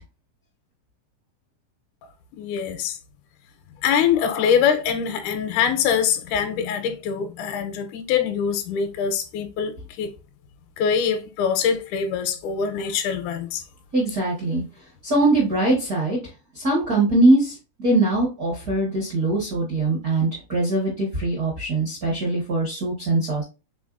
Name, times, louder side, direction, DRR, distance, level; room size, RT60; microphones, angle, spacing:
voice 1, 2.4-3.0 3.8-9.7 10.0-10.1 10.8-13.6, left 7 dB, 80° left, 2.1 m, -23 dB
voice 2, 13.9-14.6 15.0-16.2 16.5-23.4, right 2 dB, 70° right, 0.8 m, -22 dB
5.2 x 3.7 x 2.4 m
omnidirectional pair, 3.7 m